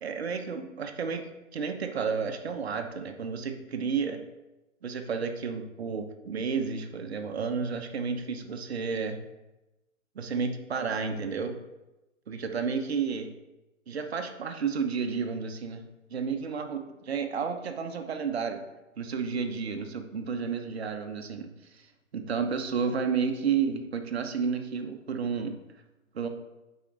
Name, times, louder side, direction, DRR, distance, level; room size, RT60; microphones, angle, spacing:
voice 1, 0.0-4.2 4.8-9.2 10.1-11.6 12.3-13.3 13.9-15.8 16.1-18.6 19.0-21.5 22.1-25.6 26.1-26.3, right 6 dB, 50° right, 6 dB, 0.9 m, -31 dB
8.2 x 5.1 x 3.9 m, 1.0 s
hypercardioid pair, 160°, 40 cm